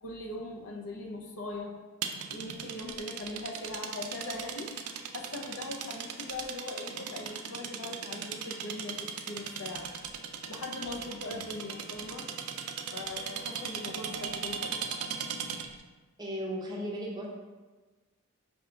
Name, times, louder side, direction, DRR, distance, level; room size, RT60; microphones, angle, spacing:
voice 1, 0.0-1.8 2.3-4.7 5.1-12.3 12.9-14.8, left 2 dB, 70° left, 1 dB, 0.6 m, -40 dB
sound 1, 2.0-15.8, right 7 dB, 80° right, 0.4 m, -38 dB
voice 2, 16.2-17.3, equal, 20° right, -3 dB, 0.6 m, -35 dB
5.6 x 2.3 x 3.8 m, 1.3 s
head